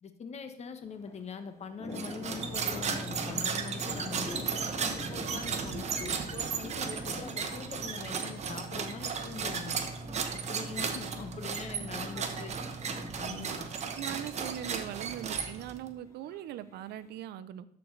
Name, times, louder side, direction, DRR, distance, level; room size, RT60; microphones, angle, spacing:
voice 1, 0.0-4.5 4.9-9.8 10.3-12.6 13.1-13.7, left 5 dB, 40° left, 8 dB, 1.1 m, -43 dB
sound 1, 0.9-17.2, left 1 dB, 15° left, 1.7 m, -47 dB
sound 2, 1.9-15.9, right 5 dB, 40° right, 1.0 m, -35 dB
voice 2, 12.1-12.6 13.2-13.6 14.0-17.7, right 12 dB, 75° right, 14 dB, 0.6 m, -41 dB
12.5 x 4.6 x 3.9 m, 0.73 s
cardioid pair, 110°, 17 cm